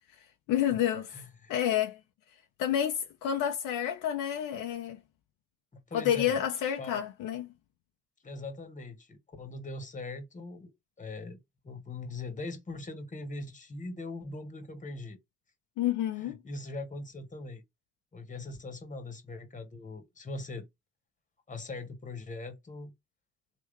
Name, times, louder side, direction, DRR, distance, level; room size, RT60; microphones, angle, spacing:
voice 1, 0.5-1.2 1.5-2.0 2.6-5.0 5.9-7.5 15.8-16.4, left 10 dB, 65° left, 0.8 m, -29 dB
voice 2, 1.1-1.5 5.7-6.4 6.8-7.0 8.2-10.7 11.0-11.4 11.6-15.2 16.2-17.6 18.1-20.7 21.5-22.9, left 2 dB, 20° left, 1.4 m, -41 dB
3.7 x 2.9 x 3.2 m
hypercardioid pair, 65°, 34 cm